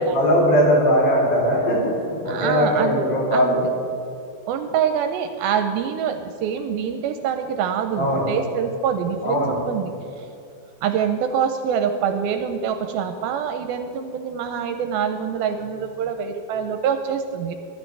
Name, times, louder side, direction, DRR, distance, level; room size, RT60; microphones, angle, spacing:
voice 1, 0.0-3.6 8.0-8.3 9.2-9.5, equal, 65° left, -5 dB, 4.8 m, -19 dB
voice 2, 2.3-3.0 3.3-3.6 4.5-9.9 10.2-10.3 10.8-17.5, right 7 dB, 80° right, 7 dB, 2.3 m, -25 dB
21.5 x 11.5 x 3.4 m, 2.7 s
omnidirectional pair, 4.6 m